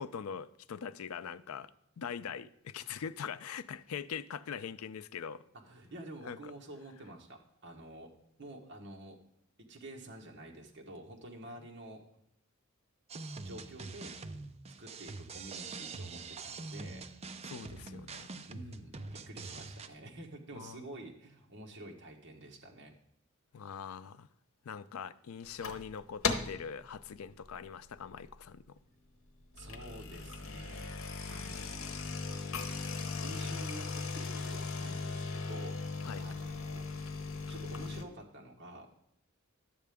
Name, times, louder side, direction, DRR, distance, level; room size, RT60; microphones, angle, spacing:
voice 1, 0.0-1.7 2.0-5.4 6.2-6.4 17.5-18.4 20.6-20.8 23.5-24.3 24.6-28.8 36.0-36.3, left 7 dB, 90° left, 0.4 m, -42 dB
voice 2, 5.6-8.1 8.4-9.2 9.6-12.0 13.4-14.2 14.8-17.1 18.5-22.9 29.6-30.9 31.3-32.0 33.2-36.9 37.5-38.9, right 1 dB, 55° right, 1.3 m, -49 dB
sound 1, 13.1-19.9, right 3 dB, 30° right, 0.5 m, -44 dB
sound 2, 25.4-25.9 26.2-26.7 27.1-27.4 28.0-28.1 28.3-28.4 29.4-38.0, left 4 dB, 70° left, 0.9 m, -38 dB
11.0 x 7.6 x 3.5 m
head